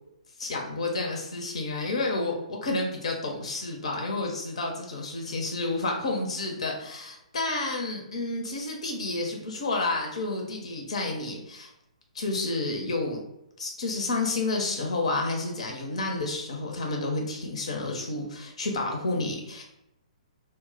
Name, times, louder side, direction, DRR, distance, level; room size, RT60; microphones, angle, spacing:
voice 1, 0.4-11.7 12.1-13.2 13.6-19.6, left 2 dB, 60° left, 1 dB, 0.5 m, -30 dB
2.1 x 2.0 x 3.7 m, 0.85 s
figure-of-eight pair, 120°, 4 cm